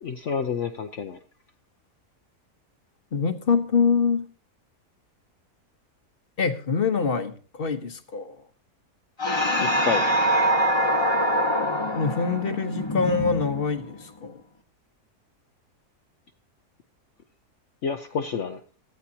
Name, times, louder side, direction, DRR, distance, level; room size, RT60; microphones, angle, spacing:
voice 1, 0.0-1.2 9.6-10.1 17.8-18.6, left 6 dB, 55° left, 1.1 m, -29 dB
voice 2, 3.1-4.3 6.4-8.4 11.9-14.4, left 5 dB, 40° left, 1.3 m, -25 dB
sound 1, 9.2-14.0, equal, 20° left, 1.1 m, -24 dB
17.0 x 13.5 x 2.9 m
omnidirectional pair, 1.6 m